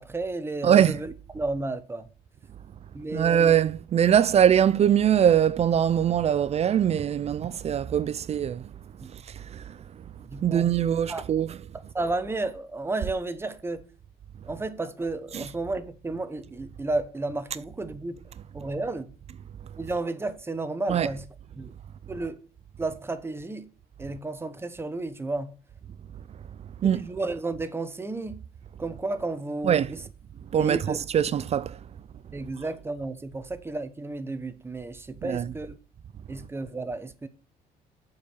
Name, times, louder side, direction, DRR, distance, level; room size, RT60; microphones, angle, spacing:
voice 1, 0.0-2.1 2.9-3.6 9.0-9.1 10.3-10.7 11.1-11.3 11.7-13.9 14.5-18.2 18.5-19.1 19.8-21.2 21.6-21.7 22.1-22.4 22.8-23.7 24.0-25.5 26.8-28.4 28.8-30.0 30.6-31.0 32.3-35.8 36.3-37.3, right 2 dB, 15° right, 0.9 m, -32 dB
voice 2, 0.6-1.0 3.1-8.6 9.5-9.6 10.4-11.6 15.3-15.5 20.9-21.1 26.8-27.0 29.6-29.9 30.5-31.8 35.2-35.5, right 9 dB, 40° right, 0.4 m, -22 dB
7.1 x 4.8 x 6.9 m
cardioid pair, 110°, 17 cm